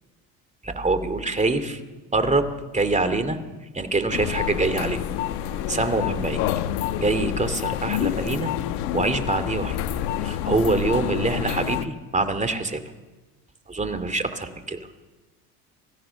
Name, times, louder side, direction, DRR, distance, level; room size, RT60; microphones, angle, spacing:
voice 1, 0.6-1.8 2.1-3.4 3.7-5.0 5.7-6.4 7.0-8.5 8.9-9.8 10.2-12.8 13.7-14.9, right 3 dB, 15° right, 10 dB, 2.7 m, -25 dB
sound 1, 4.1-11.9, left 11 dB, 70° left, 1.3 m, -28 dB
25.5 x 15.5 x 7.2 m, 1.2 s
hypercardioid pair, 70°, 45 cm